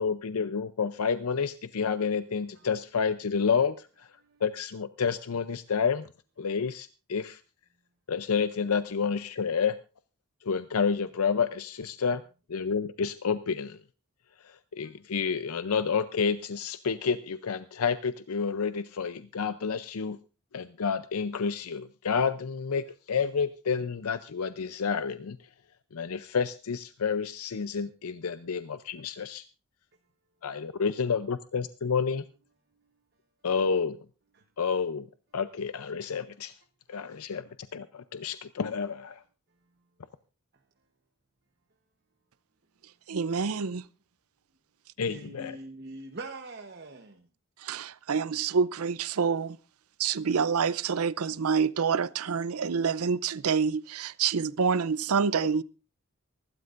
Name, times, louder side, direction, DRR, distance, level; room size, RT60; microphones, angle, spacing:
voice 1, 0.0-4.1 4.4-6.1 6.4-7.4 8.1-9.8 10.4-12.2 12.5-13.8 14.4-20.2 20.5-25.4 25.9-29.4 30.4-32.2 33.4-34.0 34.6-35.1 35.3-36.5 36.9-39.2 45.0-45.5, left 6 dB, 80° left, 0.6 m, -29 dB
voice 2, 43.1-43.8 47.6-49.6 50.0-55.6, right 6 dB, 80° right, 0.6 m, -27 dB
voice 3, 45.0-47.3, right 2 dB, 45° right, 1.0 m, -43 dB
24.5 x 12.5 x 2.5 m
head